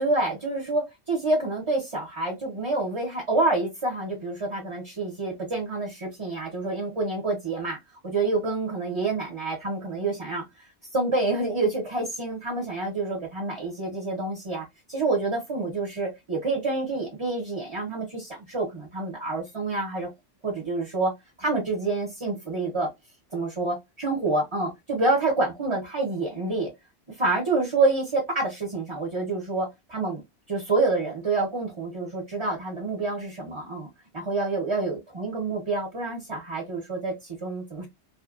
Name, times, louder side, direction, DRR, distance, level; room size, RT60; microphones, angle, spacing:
voice 1, 0.0-7.8 8.0-10.7 10.9-20.1 20.4-21.1 21.4-22.9 23.3-26.7 27.2-30.2 30.5-33.9 34.1-37.9, right 3 dB, 30° right, 0.8 m, -27 dB
2.6 x 2.4 x 2.4 m
omnidirectional pair, 1.2 m